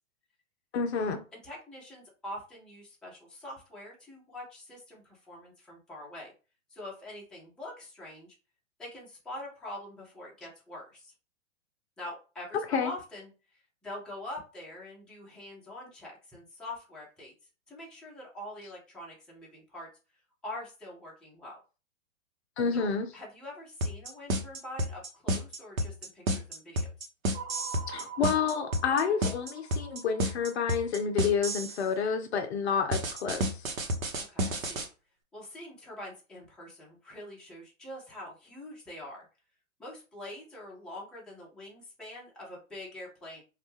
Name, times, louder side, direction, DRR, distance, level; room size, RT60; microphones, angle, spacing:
voice 1, 0.7-1.2 12.7-12.9 22.6-23.1 27.9-33.7, left 6 dB, 55° left, 0.5 m, -29 dB
voice 2, 1.3-6.3 6.7-8.4 8.8-11.1 12.0-17.3 17.7-19.9 20.4-21.6 22.7-26.9 34.3-34.9 35.3-39.3 39.8-43.4, left 1 dB, ahead, 0.6 m, -44 dB
sound 1, 23.8-31.8 32.9-34.9, right 1 dB, 80° right, 0.8 m, -30 dB
sound 2, 27.3-31.6, right 6 dB, 50° right, 0.4 m, -45 dB
2.3 x 2.1 x 3.1 m
figure-of-eight pair, 115°, 40 cm